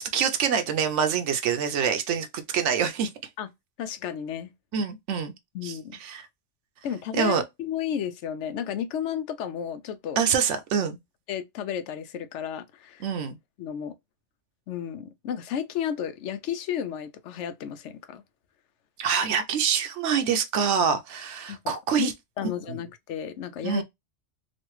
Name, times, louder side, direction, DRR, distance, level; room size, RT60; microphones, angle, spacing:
voice 1, 0.1-2.3 2.5-3.1 4.7-5.3 5.6-6.3 7.1-7.4 10.2-11.0 13.0-13.4 19.0-22.1 22.7-22.8 23.6-23.8, right 7 dB, 85° right, 0.9 m, -25 dB
voice 2, 3.8-4.5 5.5-6.0 6.8-10.2 11.3-13.1 13.6-13.9 14.7-18.2 21.5-23.8, left 9 dB, 80° left, 0.9 m, -33 dB
3.1 x 2.4 x 3.0 m
omnidirectional pair, 1.2 m